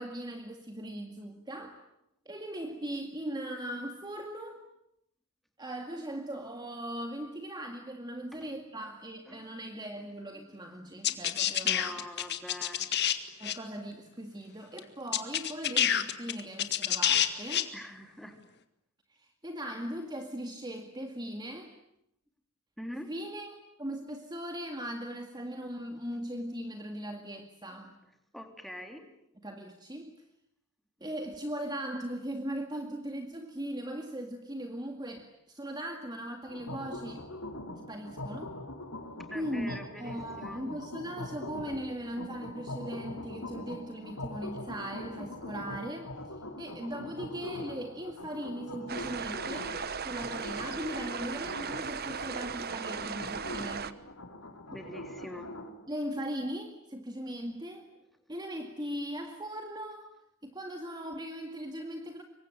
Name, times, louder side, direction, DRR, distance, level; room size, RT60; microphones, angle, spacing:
voice 1, 0.0-1.8 2.3-4.6 5.6-11.9 13.4-17.7 19.1-21.7 23.1-28.0 29.4-30.1 31.0-37.3 37.9-38.6 39.3-54.0 55.9-57.9 58.3-60.1 60.4-62.2, equal, 20° right, 4 dB, 2.0 m, -39 dB
sound 1, 11.0-13.2 13.4-13.5 14.8-14.9 15.1-17.6, left 10 dB, 50° left, 1.9 m, -27 dB
voice 2, 11.6-12.9 17.7-18.4 22.8-23.1 27.7-27.8 28.3-29.1 39.3-40.6 54.7-55.5, equal, ahead, 5 dB, 3.3 m, -44 dB
sound 2, 36.5-55.7, left 1 dB, 75° left, 4.8 m, -43 dB
sound 3, 48.9-53.9, right 6 dB, 45° right, 1.1 m, -37 dB
26.0 x 23.5 x 9.2 m, 0.76 s
head